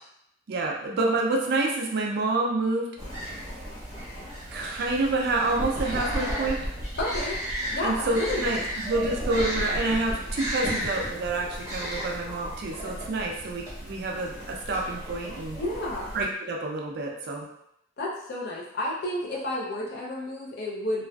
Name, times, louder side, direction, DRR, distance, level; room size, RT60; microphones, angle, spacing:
voice 1, 0.5-2.9 4.5-6.6 7.8-15.6 16.1-17.5, right 2 dB, 55° right, 0 dB, 0.4 m, -28 dB
sound 1, 3.0-16.3, equal, 20° right, 0.9 m, -34 dB
voice 2, 7.0-7.4 7.7-8.6 15.6-16.1 18.0-21.1, left 1 dB, 55° left, -3 dB, 0.6 m, -31 dB
2.4 x 2.4 x 2.2 m, 0.77 s
head